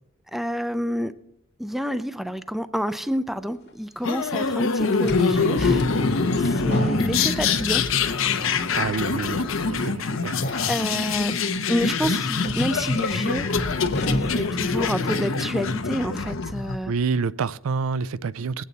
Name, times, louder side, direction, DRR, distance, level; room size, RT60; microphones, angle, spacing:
voice 1, 0.3-1.1 1.6-7.8 10.7-13.5 13.9-16.9, equal, ahead, 0.4 m, -29 dB
sound 1, 3.7-3.8 5.0-8.0 8.3-8.8 9.4-9.7 10.4-11.0 11.8-14.6 14.9-15.0 16.2-16.4, left 1 dB, 50° left, 1.2 m, -33 dB
sound 2, 4.0-16.8, left 4 dB, 70° left, 0.8 m, -24 dB
voice 2, 8.7-10.3 16.9-18.6, right 5 dB, 80° right, 0.4 m, -28 dB
20.5 x 8.4 x 4.0 m
head